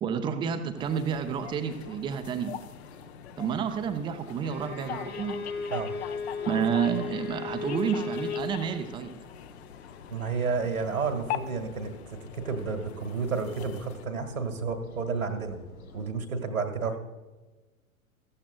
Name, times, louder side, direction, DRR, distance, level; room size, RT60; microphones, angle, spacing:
voice 1, 0.0-2.5 3.4-5.4 6.5-9.1, right 7 dB, 10° right, 8 dB, 0.5 m, -30 dB
sound 1, 0.6-16.1, left 4 dB, 75° left, 1.9 m, -51 dB
sound 2, 0.8-14.0, left 11 dB, 50° left, 0.7 m, -42 dB
Bowed string instrument, 4.4-8.5, left 5 dB, 90° left, 2.8 m, -35 dB
voice 2, 10.1-15.6 15.9-17.0, right 5 dB, 75° right, 5 dB, 1.8 m, -31 dB
15.0 x 14.0 x 2.2 m, 1.3 s
figure-of-eight pair, 100°, 43 cm